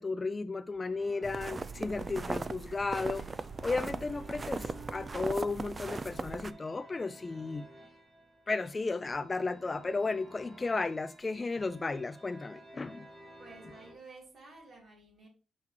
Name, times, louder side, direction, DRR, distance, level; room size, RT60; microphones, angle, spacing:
voice 1, 0.0-7.6 8.5-13.1, left 3 dB, 30° left, 0.3 m, -34 dB
sound 1, 0.8-13.9, right 1 dB, 50° right, 2.7 m, -54 dB
sound 2, 1.2-6.5, right 4 dB, 35° right, 0.4 m, -38 dB
voice 2, 13.4-15.3, right 3 dB, 65° right, 3.1 m, -52 dB
6.1 x 5.8 x 2.9 m
cardioid pair, 80°, 0 cm